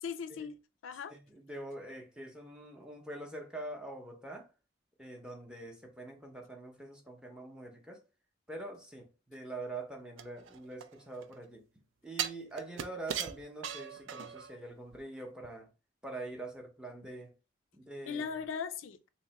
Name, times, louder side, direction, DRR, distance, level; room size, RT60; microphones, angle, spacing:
voice 1, 0.0-1.2 18.0-19.1, left 6 dB, 85° left, 0.4 m, -39 dB
voice 2, 1.1-4.5 5.0-8.0 8.5-11.6 12.0-15.7 16.0-17.3 17.7-18.2, right 2 dB, 5° right, 0.5 m, -44 dB
sound 1, 10.2-11.3 12.2-14.5 14.9-15.0, right 9 dB, 75° right, 0.4 m, -39 dB
3.6 x 2.1 x 4.0 m
head